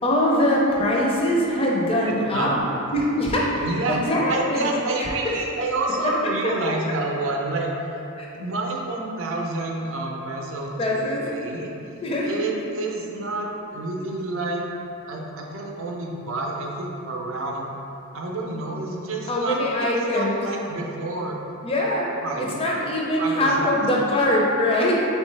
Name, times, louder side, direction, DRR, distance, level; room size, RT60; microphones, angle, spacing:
voice 1, 0.0-2.6 2.9-4.7 5.0-5.3 8.2-8.3 10.8-11.3 12.0-12.3 19.3-20.4 21.6-22.1 22.4-24.9, left 1 dB, 25° left, -3 dB, 0.5 m, -22 dB
voice 2, 2.1-2.5 3.6-8.0 8.3-11.0 11.2-11.8 12.3-14.6 15.1-17.7 18.1-19.6 19.9-21.4 22.2-22.6 23.2-23.7, right 2 dB, 65° right, 0 dB, 0.5 m, -29 dB
4.0 x 3.2 x 3.2 m, 2.9 s
head